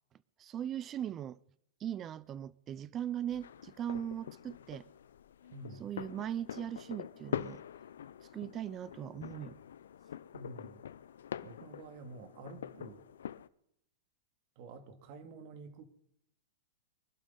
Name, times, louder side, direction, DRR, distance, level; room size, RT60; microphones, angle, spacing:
voice 1, 0.4-1.4 1.8-4.9 5.8-7.6 8.3-9.6, right 10 dB, 25° right, 0.6 m, -39 dB
sound 1, 3.3-13.5, left 9 dB, 85° left, 0.6 m, -45 dB
voice 2, 5.5-5.9 10.3-10.8 11.4-13.0 14.6-15.8, right 3 dB, 50° right, 2.6 m, -49 dB
24.0 x 11.5 x 4.1 m
hypercardioid pair, 135°, 0 cm